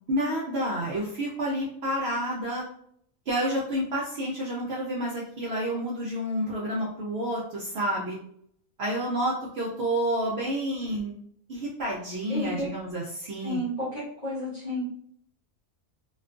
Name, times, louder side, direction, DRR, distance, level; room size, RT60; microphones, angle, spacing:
voice 1, 0.1-2.6 3.3-8.2 8.8-11.1 11.5-13.6, equal, 65° right, -4 dB, 0.6 m, -29 dB
voice 2, 12.3-12.7 13.4-14.8, left 1 dB, 40° left, -7 dB, 0.7 m, -31 dB
2.4 x 2.3 x 2.4 m, 0.67 s
omnidirectional pair, 1.5 m